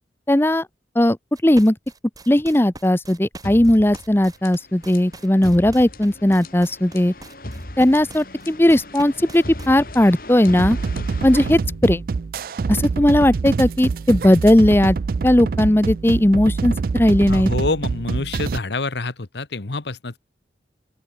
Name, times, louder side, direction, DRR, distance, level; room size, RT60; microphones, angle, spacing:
voice 1, 0.3-0.7 1.0-1.2 1.4-1.8 2.3-7.1 7.8-10.8 11.2-12.0 12.7-15.0 15.2-17.5, left 1 dB, 15° left, 0.6 m, -17 dB
sound 1, 1.4-9.7, right 2 dB, 20° right, 2.9 m, -41 dB
sound 2, 3.4-12.4, left 1 dB, 50° left, 5.2 m, -37 dB
sound 3, 10.6-18.6, right 4 dB, 50° right, 0.3 m, -25 dB
voice 2, 17.3-20.2, left 3 dB, 75° left, 1.2 m, -27 dB
open air
head